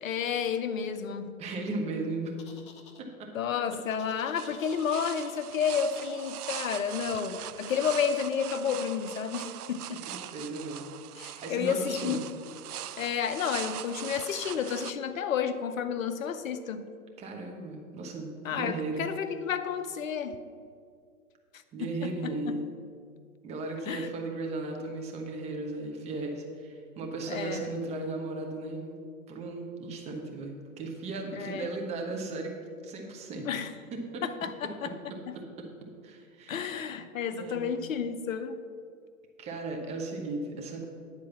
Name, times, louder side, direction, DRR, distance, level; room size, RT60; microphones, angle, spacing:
voice 1, 0.0-1.3 3.3-10.1 11.2-12.3 13.0-16.9 18.4-20.4 21.8-22.6 23.9-24.1 27.3-27.7 31.3-31.7 33.4-33.7 34.2-35.4 36.5-38.6, left 7 dB, 65° left, 11 dB, 0.7 m, -31 dB
voice 2, 1.4-2.3 3.0-3.3 9.9-12.2 17.2-19.1 21.7-22.7 23.4-29.0 29.3-33.5 33.9-34.2 35.3-35.7 36.0-36.7 37.4-37.6 39.4-40.9, right 3 dB, 15° right, 1 dB, 0.9 m, -36 dB
sound 1, 2.4-3.0 3.9-5.4 5.9-6.3, left 5 dB, 20° left, 0.5 m, -51 dB
sound 2, 4.4-14.9, right 11 dB, 90° right, 0.5 m, -41 dB
9.9 x 4.7 x 7.0 m, 2.2 s
hypercardioid pair, 135°, 44 cm